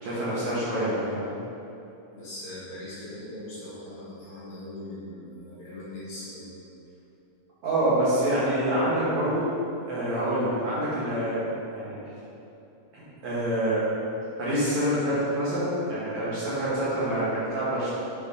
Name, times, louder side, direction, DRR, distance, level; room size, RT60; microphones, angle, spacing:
voice 1, 0.0-1.3 7.6-9.5 9.8-11.5 11.8-12.0 12.9-13.8 14.4-17.9, right 1 dB, 60° right, -9 dB, 2.2 m, -26 dB
voice 2, 2.1-6.5, left 1 dB, 60° left, -10 dB, 2.7 m, -40 dB
7.3 x 5.2 x 3.6 m, 2.9 s
omnidirectional pair, 4.3 m